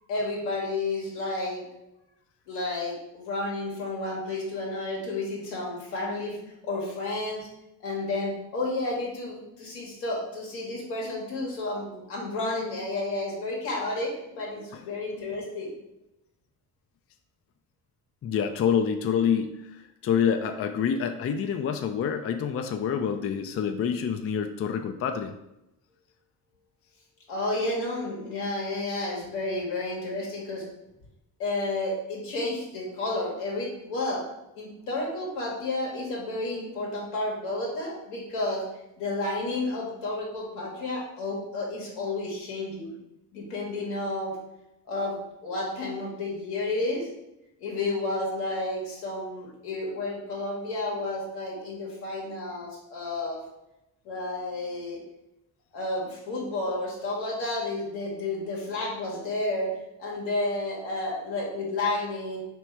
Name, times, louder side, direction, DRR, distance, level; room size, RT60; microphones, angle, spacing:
voice 1, 0.1-1.6 2.5-7.5 7.8-15.7 27.3-30.7 31.4-34.2 34.5-38.6 39.0-42.9 43.3-44.3 44.9-47.1 47.6-53.4 54.0-55.0 55.7-59.7 60.0-62.4, left 2 dB, 85° left, -3 dB, 1.5 m, -31 dB
voice 2, 18.2-25.3, left 7 dB, 35° left, 7 dB, 0.4 m, -27 dB
3.1 x 3.0 x 4.6 m, 0.89 s
supercardioid pair, 55°, 42 cm